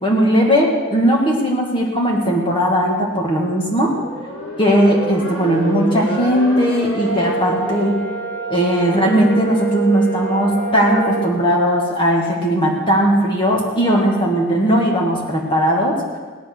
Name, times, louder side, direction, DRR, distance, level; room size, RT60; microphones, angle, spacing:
voice 1, 0.0-4.0 4.6-8.1 8.5-16.2, equal, 25° left, -1 dB, 2.1 m, -17 dB
sound 1, 3.6-11.2, right 3 dB, 80° left, 3.5 m, -27 dB
17.5 x 11.0 x 6.3 m, 1.4 s
head